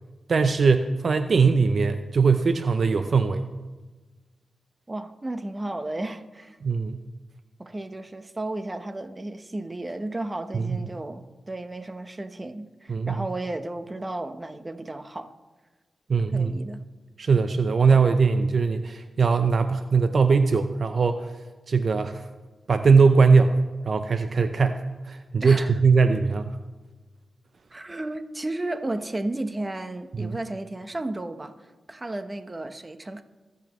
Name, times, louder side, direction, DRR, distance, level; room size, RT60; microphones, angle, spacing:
voice 1, 0.3-3.5 6.6-7.0 10.5-10.8 12.9-13.2 16.1-16.5 17.2-21.3 21.7-22.3 22.7-26.5 30.2-30.4, right 5 dB, 60° right, 0.6 m, -21 dB
voice 2, 4.9-6.6 7.6-15.3 16.3-16.8 25.4-25.7 27.7-33.2, right 2 dB, 25° right, 1.0 m, -33 dB
24.5 x 8.3 x 3.1 m
cardioid pair, 70°, 0 cm